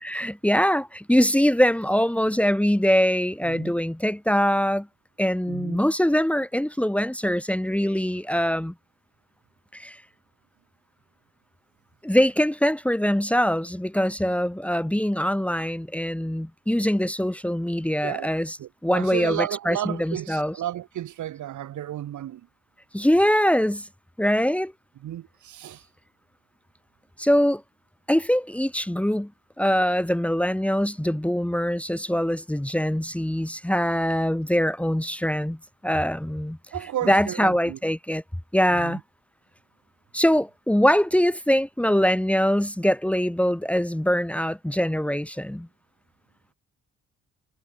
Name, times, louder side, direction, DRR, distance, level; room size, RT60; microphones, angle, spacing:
voice 1, 0.0-4.9 5.2-8.7 9.7-10.0 12.0-18.6 18.8-20.5 22.9-23.9 24.2-24.7 27.2-27.6 28.1-29.3 29.6-35.6 35.8-36.6 37.1-38.2 38.5-39.0 40.1-45.7, equal, 5° left, 2.0 m, -23 dB
voice 2, 3.4-3.7 5.5-5.8 18.0-18.3 18.6-22.5 25.0-25.8 36.7-37.8 38.7-39.0, right 12 dB, 75° right, 6.0 m, -33 dB
cardioid pair, 90°, 30 cm